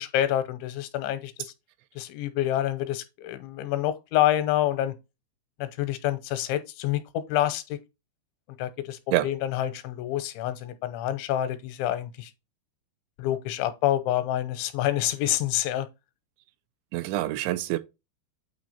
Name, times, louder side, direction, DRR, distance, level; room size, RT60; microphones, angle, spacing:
voice 1, 0.0-1.5 2.0-5.0 5.6-7.8 8.6-9.0 9.2-12.3 13.2-15.9, left 12 dB, 90° left, 3.2 m, -27 dB
voice 2, 16.9-17.8, right 15 dB, 90° right, 3.1 m, -26 dB
9.0 x 3.1 x 5.6 m
omnidirectional pair, 5.2 m